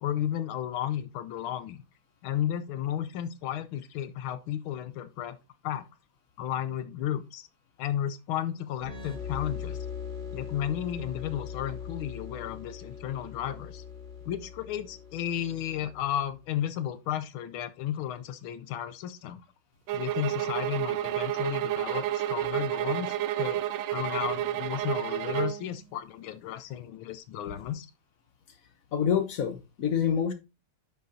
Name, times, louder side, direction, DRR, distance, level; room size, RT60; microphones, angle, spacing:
voice 1, 0.0-1.8 2.2-5.4 5.6-5.9 6.4-7.5 7.8-9.8 10.3-13.8 14.2-19.4 19.9-23.6 23.9-27.9, left 10 dB, 80° left, 1.5 m, -33 dB
sound 1, 8.8-16.3, left 7 dB, 30° right, 2.8 m, -40 dB
sound 2, 19.9-25.6, right 13 dB, 75° right, 1.2 m, -30 dB
voice 2, 28.9-30.3, left 8 dB, 60° left, 0.9 m, -26 dB
10.5 x 6.4 x 2.7 m
omnidirectional pair, 2.4 m